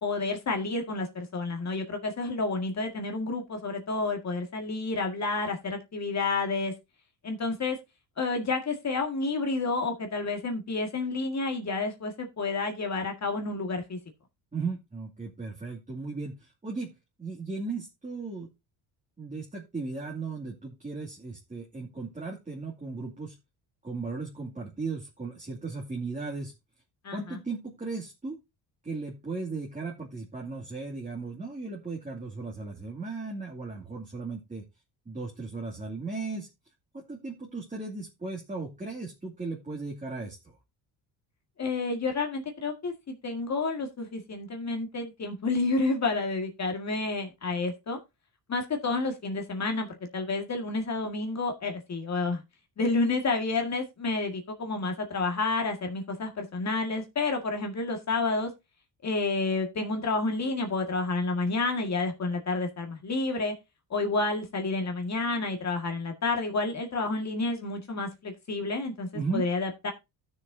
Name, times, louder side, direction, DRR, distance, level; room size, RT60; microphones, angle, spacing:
voice 1, 0.0-6.7 7.2-7.8 8.2-14.0 27.0-27.4 41.6-48.0 48.5-52.4 52.8-58.5 59.0-63.5 63.9-69.9, left 3 dB, 40° left, 3 dB, 2.0 m, -30 dB
voice 2, 14.5-16.9 17.2-18.5 19.2-23.4 23.8-26.5 27.1-28.4 28.8-34.6 35.1-36.5 36.9-40.6 69.1-69.5, right 3 dB, 15° right, -2 dB, 2.5 m, -36 dB
15.5 x 6.5 x 2.7 m, 0.23 s
cardioid pair, 95°, 43 cm